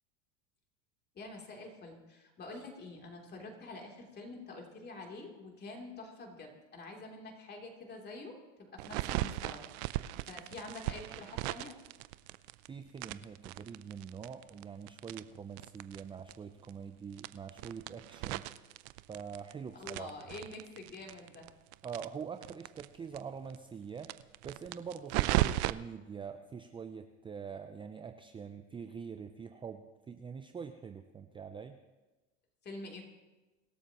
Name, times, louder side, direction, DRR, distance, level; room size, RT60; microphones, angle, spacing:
voice 1, 1.1-9.6 10.0-11.7 19.7-21.5 32.6-33.0, left 2 dB, 30° left, 1 dB, 3.1 m, -47 dB
sound 1, 8.8-12.7 13.0-16.0 16.3-16.4 16.6-16.7 17.1-19.5 19.8-22.9 23.1-23.2 23.5-23.6 24.0-25.7, right 17 dB, 65° right, 0.6 m, -36 dB
voice 2, 12.7-18.5 19.1-20.1 21.8-24.1 24.4-31.8, right 6 dB, 15° right, 7 dB, 0.5 m, -44 dB
25.5 x 12.5 x 3.0 m, 1.2 s
supercardioid pair, 120°, 36 cm